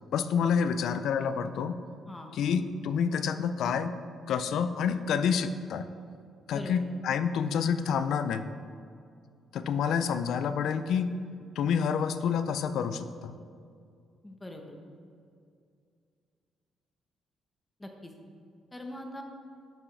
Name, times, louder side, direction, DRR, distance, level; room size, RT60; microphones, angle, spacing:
voice 1, 0.1-1.8 2.3-3.9 4.3-5.9 6.5-8.5 9.5-11.1 11.6-13.4, left 7 dB, 70° left, 11 dB, 0.4 m, -28 dB
voice 2, 14.2-14.8 17.8-18.1 18.7-19.2, left 1 dB, 10° left, 3 dB, 0.9 m, -42 dB
11.5 x 6.0 x 3.3 m, 2.3 s
cardioid pair, 135°, 0 cm